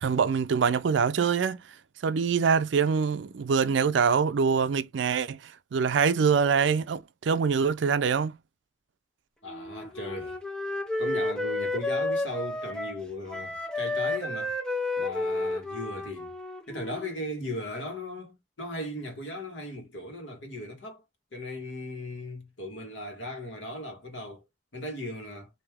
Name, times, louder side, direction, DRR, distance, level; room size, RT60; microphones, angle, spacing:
voice 1, 0.0-1.6 2.0-8.3, right 6 dB, 75° right, 0.4 m, -24 dB
voice 2, 9.4-10.4 11.0-14.5 15.0-16.3 16.7-21.0 21.3-24.4 24.7-25.5, left 1 dB, 80° left, 1.4 m, -37 dB
Wind instrument woodwind instrument, 9.5-13.0 13.3-17.2, left 2 dB, 5° left, 0.4 m, -31 dB
3.1 x 2.7 x 3.4 m
head